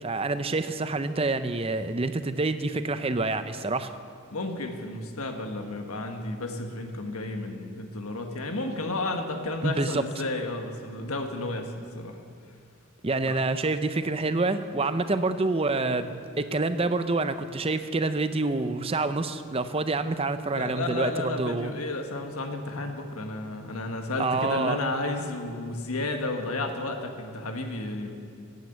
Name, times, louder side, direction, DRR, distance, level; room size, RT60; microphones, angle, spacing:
voice 1, 0.0-3.9 9.6-10.0 13.0-21.7 24.2-24.8, right 3 dB, 25° right, 11 dB, 0.6 m, -27 dB
voice 2, 4.3-12.2 13.2-13.4 20.5-28.2, left 2 dB, 80° left, 4 dB, 1.5 m, -32 dB
15.0 x 9.4 x 8.0 m, 2.3 s
head